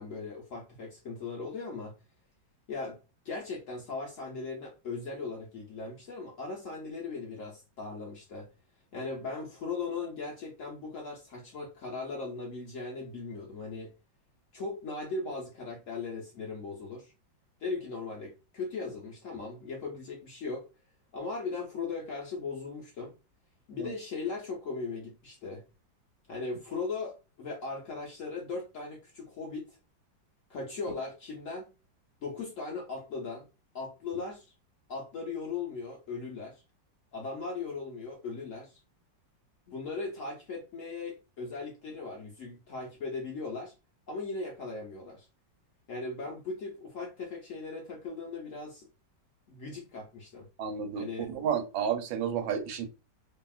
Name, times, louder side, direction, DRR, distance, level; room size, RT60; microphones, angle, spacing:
voice 1, 0.0-2.0 2.7-3.0 3.2-8.5 8.9-13.9 14.5-17.1 17.6-20.7 21.1-23.2 23.7-25.6 26.3-29.8 30.5-31.7 32.2-33.5 33.7-34.5 34.9-36.6 37.1-38.8 39.7-43.7 44.1-45.3 45.9-48.9 49.5-50.5 50.9-51.3, left 4 dB, 80° left, 0.7 m, -38 dB
voice 2, 50.6-51.0 51.3-52.9, right 7 dB, 85° right, 1.4 m, -31 dB
2.8 x 2.7 x 2.3 m
omnidirectional pair, 2.1 m